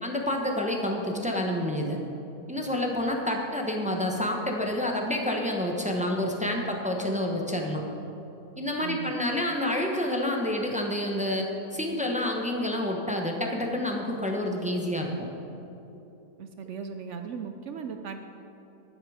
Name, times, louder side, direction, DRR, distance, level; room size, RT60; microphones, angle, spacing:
voice 1, 0.0-2.0 2.5-7.8 8.6-15.1, left 1 dB, 5° right, 1 dB, 0.7 m, -28 dB
voice 2, 8.8-9.1 16.4-18.3, right 6 dB, 65° right, 6 dB, 0.7 m, -37 dB
11.0 x 9.6 x 4.9 m, 2.9 s
omnidirectional pair, 1.7 m